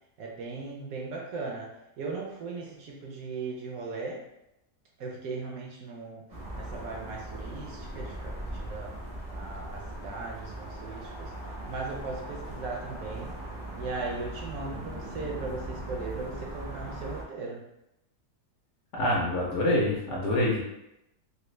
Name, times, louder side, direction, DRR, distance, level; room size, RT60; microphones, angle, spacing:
voice 1, 0.2-4.2 5.0-6.3 6.6-8.9 9.3-11.3 11.7-13.4 13.7-17.6, right 3 dB, 70° right, -2 dB, 0.9 m, -38 dB
sound 1, 6.3-17.2, right 1 dB, 40° right, 0.6 m, -39 dB
voice 2, 18.9-20.6, left 1 dB, 60° left, -4 dB, 0.8 m, -26 dB
3.3 x 2.4 x 3.0 m, 0.88 s
omnidirectional pair, 1.8 m